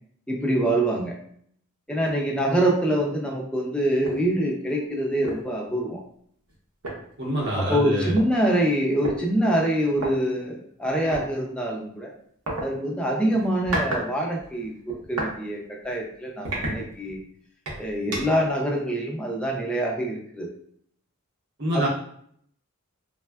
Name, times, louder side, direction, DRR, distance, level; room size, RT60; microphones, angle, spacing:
voice 1, 0.3-1.1 1.9-6.0 7.6-12.1 12.6-17.2 17.8-20.5 21.7-21.9, right 1 dB, 5° left, -1 dB, 0.4 m, -25 dB
sound 1, 4.0-4.2 4.7-4.8 5.2-5.5 6.5-6.6 6.8-8.3 9.0-9.2 9.9-10.1 11.1-11.3 12.5-12.7 13.4-14.1 14.4-15.3 15.8-16.0 16.4-17.2 17.7-18.4, right 1 dB, 80° right, 0.8 m, -31 dB
voice 2, 7.2-8.1 21.6-21.9, right 1 dB, 50° right, -2 dB, 0.7 m, -26 dB
3.4 x 2.2 x 2.2 m, 0.64 s
head